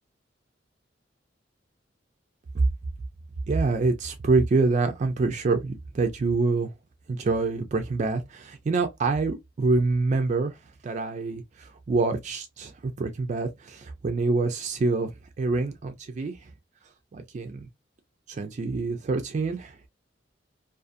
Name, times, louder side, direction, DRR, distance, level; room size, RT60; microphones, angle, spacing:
voice 1, 3.5-6.7 7.1-10.6 10.8-15.1 15.4-16.5 17.1-17.7 18.3-19.9, right 3 dB, 40° right, 0.4 m, -26 dB
2.5 x 2.4 x 2.4 m
head